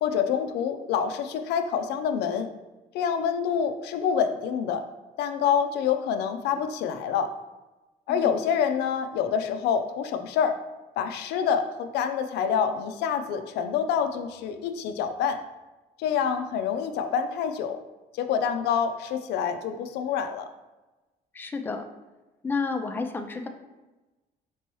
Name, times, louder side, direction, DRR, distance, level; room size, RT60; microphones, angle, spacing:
voice 1, 0.0-2.5 2.9-4.8 5.2-7.3 8.1-10.6 11.0-15.4 16.0-17.8 18.1-20.5, left 7 dB, 80° left, 8 dB, 0.4 m, -27 dB
voice 2, 21.3-21.9 22.4-23.5, left 4 dB, 10° left, 5 dB, 0.3 m, -30 dB
4.4 x 3.0 x 3.0 m, 1.1 s
cardioid pair, 110°, 17 cm